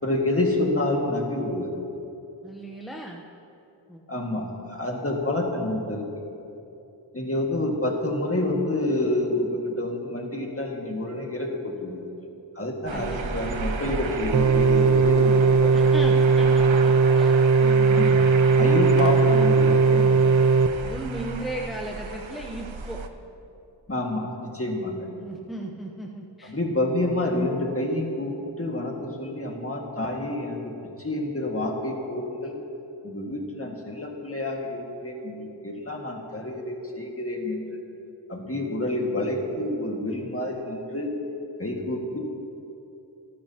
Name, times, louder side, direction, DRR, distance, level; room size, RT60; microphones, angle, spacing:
voice 1, 0.0-1.8 4.1-6.2 7.1-12.1 12.6-15.7 17.9-18.2 18.6-20.4 23.9-25.1 26.4-30.7 31.0-32.6 33.0-37.8 38.3-41.1 41.6-42.2, left 1 dB, 30° left, 0 dB, 1.8 m, -28 dB
voice 2, 2.4-3.2 3.9-4.0 12.9-13.2 15.7-18.2 20.8-23.0 25.2-26.5, right 1 dB, ahead, 0 dB, 0.8 m, -36 dB
sound 1, 12.9-23.1, right 4 dB, 85° right, 0.8 m, -34 dB
sound 2, 14.3-20.7, right 4 dB, 40° right, 0.5 m, -18 dB
26.5 x 9.5 x 2.9 m, 2.9 s
wide cardioid pair, 55°, 45 cm